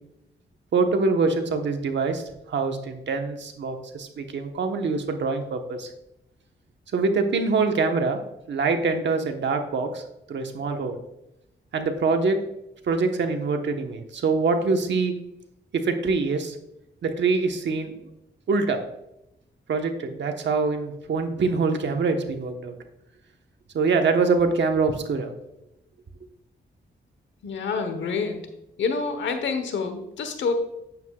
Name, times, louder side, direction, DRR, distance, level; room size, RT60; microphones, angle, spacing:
voice 1, 0.7-2.2 2.5-5.9 6.9-8.2 8.5-10.0 10.3-11.0 11.7-12.4 12.9-15.2 15.7-16.6 17.0-17.9 18.5-18.8 19.7-22.7 23.7-25.3, right 4 dB, 75° right, 5 dB, 1.1 m, -24 dB
voice 2, 27.4-28.5 28.8-30.5, left 5 dB, 90° left, 7 dB, 1.1 m, -27 dB
9.2 x 7.8 x 2.4 m, 0.84 s
cardioid pair, 70°, 19 cm